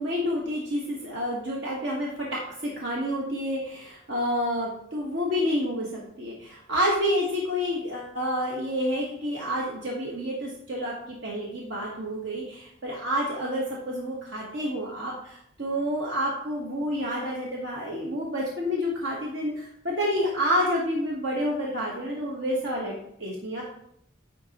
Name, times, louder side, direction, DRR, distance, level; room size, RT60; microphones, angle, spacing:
voice 1, 0.0-22.9 23.2-23.6, equal, 70° right, -3 dB, 1.1 m, -29 dB
10.0 x 4.0 x 2.9 m, 0.72 s
head